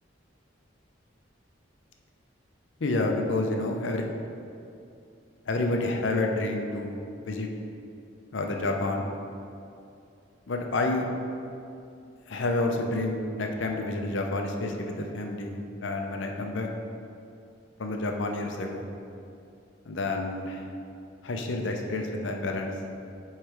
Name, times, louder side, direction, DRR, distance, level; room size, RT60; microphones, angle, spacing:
voice 1, 2.8-4.0 5.5-7.5 8.3-9.1 10.5-11.1 12.3-16.7 17.8-18.9 19.9-20.7 21.2-22.7, left 2 dB, 70° left, 2 dB, 0.6 m, -29 dB
7.8 x 3.3 x 4.9 m, 2.5 s
head